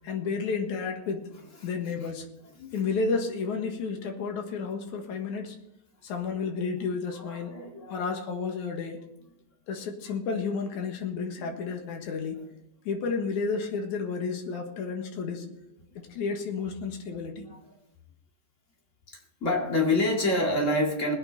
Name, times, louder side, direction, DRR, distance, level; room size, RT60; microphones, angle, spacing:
voice 1, 0.0-1.3 1.6-2.3 2.7-5.6 6.0-7.6 7.9-9.0 9.7-12.4 12.9-15.5 16.0-17.5, left 5 dB, 60° left, 4 dB, 2.7 m, -31 dB
voice 2, 7.2-8.0 11.4-11.5 15.9-16.0 17.5-17.6 19.1-21.1, left 2 dB, 25° left, 0 dB, 1.8 m, -28 dB
21.0 x 8.7 x 4.1 m, 0.84 s
omnidirectional pair, 4.1 m